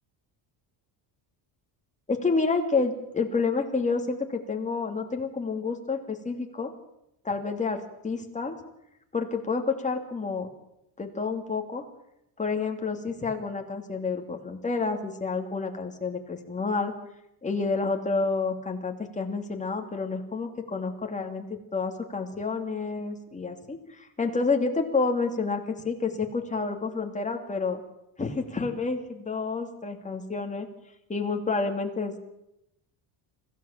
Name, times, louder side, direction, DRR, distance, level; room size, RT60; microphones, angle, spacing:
voice 1, 2.1-6.7 7.2-8.5 9.1-10.5 11.0-11.8 12.4-16.9 17.4-21.4 21.7-27.8 28.2-30.7 31.1-32.2, left 4 dB, 15° left, 3 dB, 2.8 m, -29 dB
25.5 x 16.0 x 7.4 m, 0.83 s
cardioid pair, 140°, 46 cm